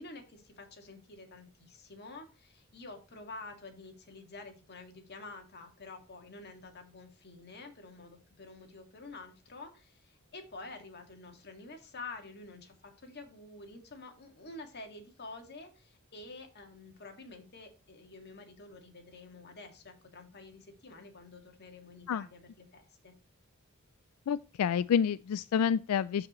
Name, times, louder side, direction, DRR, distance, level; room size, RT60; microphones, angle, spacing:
voice 1, 0.0-23.1, left 3 dB, 50° left, 2.0 m, -49 dB
voice 2, 24.3-26.3, left 7 dB, 90° left, 0.3 m, -28 dB
13.5 x 4.9 x 3.1 m
head